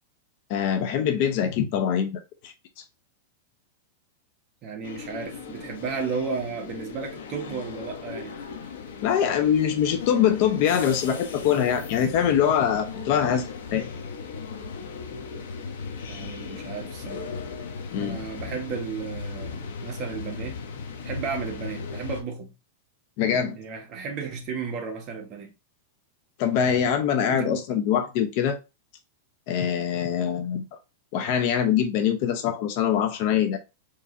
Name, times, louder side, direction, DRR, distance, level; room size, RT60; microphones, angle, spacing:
voice 1, 0.5-2.5 9.0-13.9 17.9-18.2 23.2-23.6 26.4-28.6 29.5-30.7 31.1-33.6, left 8 dB, 50° left, 0.8 m, -23 dB
voice 2, 4.6-8.3 16.1-17.3 18.0-20.6 21.0-22.5 23.5-25.5 27.3-27.6, right 5 dB, 35° right, 1.4 m, -34 dB
sound 1, 4.8-22.2, left 5 dB, 80° left, 1.0 m, -37 dB
4.6 x 3.1 x 2.6 m
supercardioid pair, 145°, 0 cm